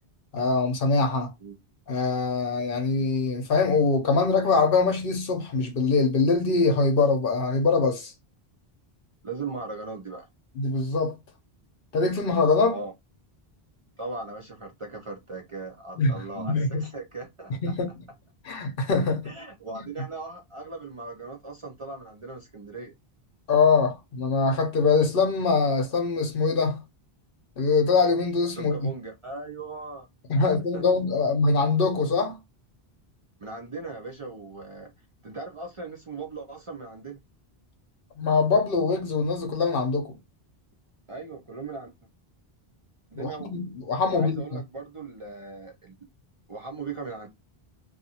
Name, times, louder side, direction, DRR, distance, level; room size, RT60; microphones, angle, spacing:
voice 1, 0.3-1.3 1.9-8.1 10.6-11.2 11.9-12.8 16.0-16.9 17.6-17.9 18.4-19.2 19.7-19.8 23.5-26.8 27.6-28.9 30.3-32.4 38.2-40.2 43.1-44.4, left 4 dB, 65° left, 0.9 m, -23 dB
voice 2, 9.2-10.3 12.7-12.9 14.0-17.7 19.2-22.9 28.6-30.1 30.3-30.5 30.7-30.8 33.4-34.9 35.2-37.2 41.1-41.9 43.1-43.6 44.1-45.9 46.5-47.3, right 3 dB, 40° right, 0.5 m, -38 dB
2.5 x 2.4 x 2.7 m
omnidirectional pair, 1.0 m